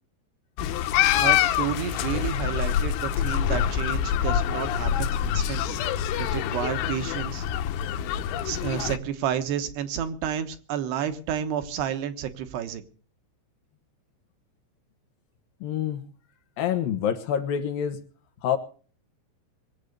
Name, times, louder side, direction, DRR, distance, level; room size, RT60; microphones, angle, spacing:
sound 1, 0.6-9.0, left 9 dB, 90° left, 3.3 m, -26 dB
voice 1, 1.2-5.8 6.2-7.5 8.4-12.8, right 9 dB, 70° right, 8 dB, 3.1 m, -31 dB
voice 2, 15.6-16.1 16.6-18.0 18.4-18.6, left 9 dB, 70° left, 8 dB, 2.4 m, -27 dB
22.5 x 8.3 x 6.7 m, 0.42 s
omnidirectional pair, 5.4 m